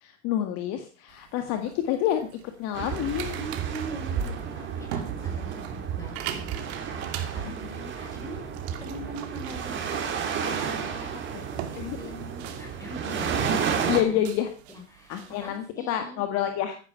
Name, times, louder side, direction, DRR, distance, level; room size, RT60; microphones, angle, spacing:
voice 1, 0.0-2.3 2.6-3.3 11.3-11.4 11.8-12.0 13.9-14.5 15.1-16.8, left 11 dB, 40° left, 7 dB, 1.8 m, -28 dB
sound 1, 1.1-15.6, right 10 dB, 50° right, 2.6 m, -43 dB
sound 2, 2.7-14.0, right 7 dB, 30° right, 3.5 m, -32 dB
voice 2, 3.3-8.5 8.8-11.2 11.5-14.4 14.7-16.2, equal, 10° left, 1 dB, 6.4 m, -42 dB
15.5 x 10.5 x 5.7 m, 0.39 s
hypercardioid pair, 125°, 40 cm